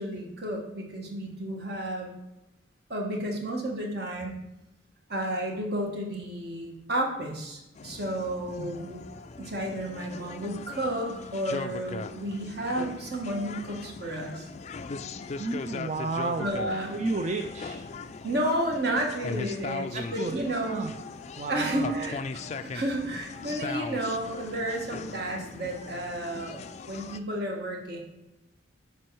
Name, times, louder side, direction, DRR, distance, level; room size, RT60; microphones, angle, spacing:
voice 1, 0.0-2.2 2.9-4.4 5.1-9.0 9.4-14.5 16.4-17.0 18.2-20.9 21.5-28.0, right 1 dB, 55° right, 1 dB, 1.4 m, -32 dB
sound 1, 7.8-27.2, left 4 dB, 35° left, 0.3 m, -39 dB
voice 2, 8.6-8.9 15.4-16.5 16.9-17.9 19.9-20.9 21.4-22.1, right 3 dB, 35° right, 6 dB, 0.4 m, -32 dB
7.4 x 5.3 x 4.6 m, 0.99 s
head